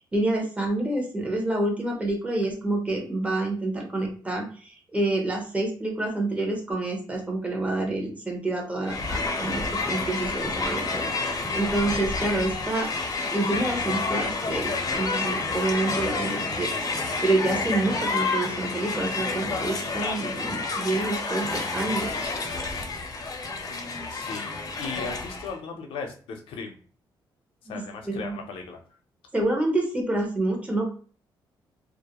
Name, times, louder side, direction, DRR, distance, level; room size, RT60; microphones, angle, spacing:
voice 1, 0.1-12.9 13.3-22.4 27.7-28.3 29.3-30.9, right 2 dB, 15° right, 1 dB, 0.8 m, -28 dB
Crowd, 8.8-25.5, left 3 dB, 45° left, 0.6 m, -29 dB
voice 2, 23.7-24.5 24.8-26.8 27.6-28.8, left 4 dB, 90° left, 3 dB, 0.6 m, -37 dB
2.3 x 2.1 x 2.9 m, 0.41 s
cardioid pair, 100°, 9 cm